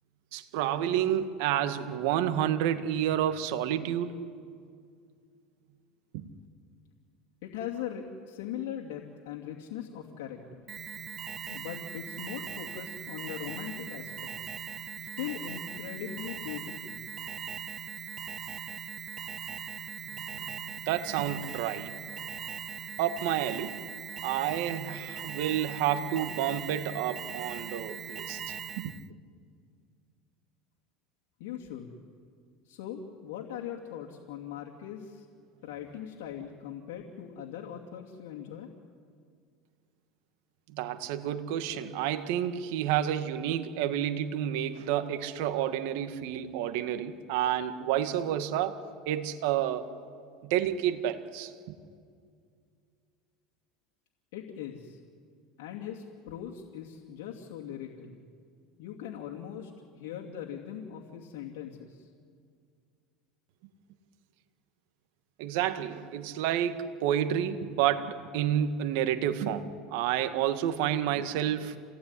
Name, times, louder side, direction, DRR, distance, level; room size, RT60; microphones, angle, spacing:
voice 1, 0.3-4.2 6.1-6.3 20.1-21.9 23.0-23.7 24.2-29.0 40.7-48.8 49.1-49.9 50.4-51.8 65.4-71.8, right 10 dB, 75° right, 1.9 m, -30 dB
voice 2, 7.4-10.6 11.4-14.3 15.0-17.0 31.4-32.0 32.6-35.2 35.6-38.7 54.3-55.0 55.6-58.2 58.8-62.1, left 9 dB, 75° left, 2.6 m, -40 dB
Alarm, 10.7-29.1, right 7 dB, 30° right, 0.6 m, -40 dB
28.0 x 18.0 x 9.8 m
supercardioid pair, 115°, 0 cm